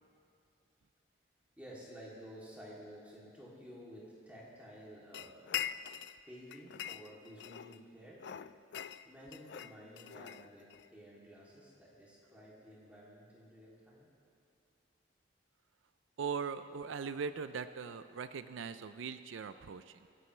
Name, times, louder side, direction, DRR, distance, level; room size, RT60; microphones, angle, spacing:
voice 1, 1.6-5.6 6.3-8.3 9.0-14.1, equal, 10° right, -7 dB, 2.9 m, -52 dB
sound 1, 5.1-6.2 6.5-7.8 8.2-10.9, left 10 dB, 60° left, 0.3 m, -42 dB
voice 2, 16.2-20.0, right 6 dB, 90° right, 12 dB, 0.4 m, -40 dB
25.0 x 10.5 x 3.3 m, 2.4 s
head